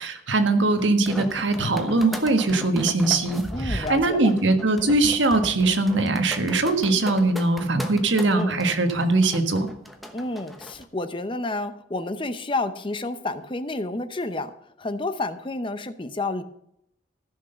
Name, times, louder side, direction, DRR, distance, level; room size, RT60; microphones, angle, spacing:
voice 1, 0.0-9.7, right 2 dB, 80° right, 7 dB, 1.5 m, -21 dB
sound 1, 0.8-10.8, equal, ahead, 1.0 m, -37 dB
voice 2, 3.5-4.3 8.2-8.6 10.1-14.5 14.8-16.4, left 2 dB, 25° left, 11 dB, 0.7 m, -30 dB
14.5 x 6.3 x 6.8 m, 0.75 s
head